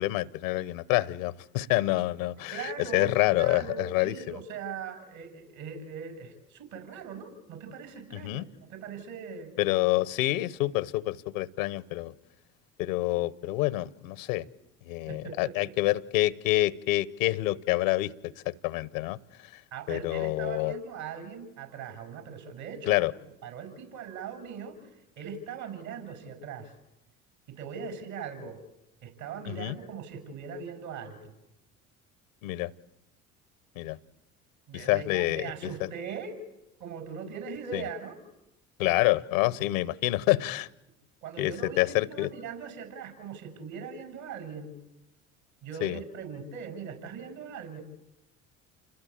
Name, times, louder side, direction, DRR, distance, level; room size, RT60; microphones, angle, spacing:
voice 1, 0.0-2.5 2.9-4.1 8.1-8.5 9.6-12.1 12.8-14.5 14.8-19.2 19.9-20.7 22.9-23.1 29.5-29.8 32.4-32.7 33.8-34.0 34.7-35.7 37.7-37.8 38.8-40.7 41.4-42.3 45.8-46.0, left 17 dB, 75° left, 18 dB, 1.1 m, -27 dB
voice 2, 2.5-9.5 15.1-15.7 19.7-23.1 23.4-26.7 27.5-28.6 29.0-31.3 34.7-36.4 36.8-38.2 38.8-39.0 39.4-39.5 39.8-39.9 41.2-44.8 45.6-47.8, right 6 dB, 65° right, 7 dB, 7.1 m, -40 dB
29.0 x 20.5 x 8.8 m, 0.92 s
hypercardioid pair, 65°, 40 cm